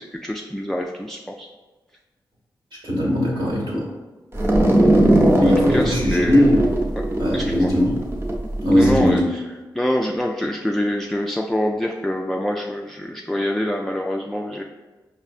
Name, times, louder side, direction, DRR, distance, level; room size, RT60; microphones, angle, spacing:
voice 1, 0.0-1.5 5.4-6.4 7.3-7.7 8.8-9.4 9.7-14.6, left 1 dB, 5° left, 0 dB, 0.3 m, -25 dB
voice 2, 2.8-3.9 5.4-6.6 7.2-8.0 8.6-9.2, equal, 85° right, -5 dB, 1.4 m, -19 dB
sound 1, 4.3-9.0, right 1 dB, 30° right, 0.7 m, -19 dB
4.7 x 2.6 x 2.4 m, 1.2 s
cardioid pair, 50°, 9 cm